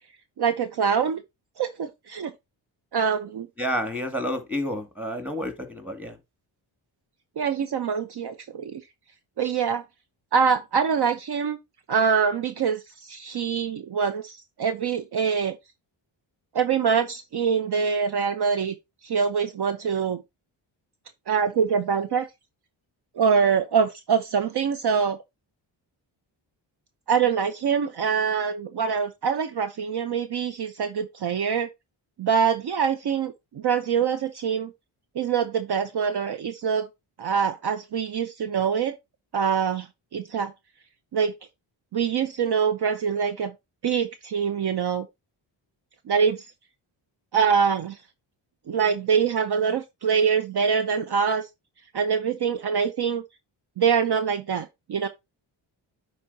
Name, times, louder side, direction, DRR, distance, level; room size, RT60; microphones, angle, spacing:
voice 1, 0.4-1.2 1.6-2.3 2.9-3.5 7.4-8.8 9.4-9.8 10.3-11.6 11.9-15.6 16.5-18.7 19.0-20.2 21.3-22.3 23.2-25.2 27.1-31.7 32.2-34.7 35.1-36.9 37.2-39.0 39.3-39.9 40.1-40.5 41.1-41.3 41.9-43.5 43.8-45.1 46.1-46.5 47.3-48.0 48.7-51.5 51.9-53.2 53.8-55.1, right 6 dB, 55° right, 0.8 m, -24 dB
voice 2, 3.6-6.2, equal, 5° right, 2.4 m, -30 dB
10.5 x 4.3 x 2.8 m
cardioid pair, 65°, 48 cm